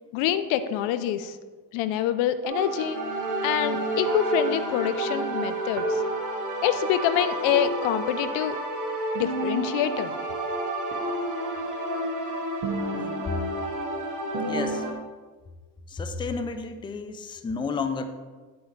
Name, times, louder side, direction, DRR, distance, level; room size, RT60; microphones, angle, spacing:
voice 1, 0.1-1.4 1.7-3.0 3.4-6.0 6.6-8.6 9.1-10.1, left 10 dB, 65° left, 12 dB, 0.8 m, -26 dB
sound 1, 2.4-14.9, right 1 dB, 40° right, 1.9 m, -29 dB
voice 2, 12.9-13.4 14.4-14.9 15.9-18.0, left 4 dB, 10° left, 9 dB, 0.5 m, -32 dB
9.3 x 8.1 x 3.3 m, 1.4 s
supercardioid pair, 85°, 49 cm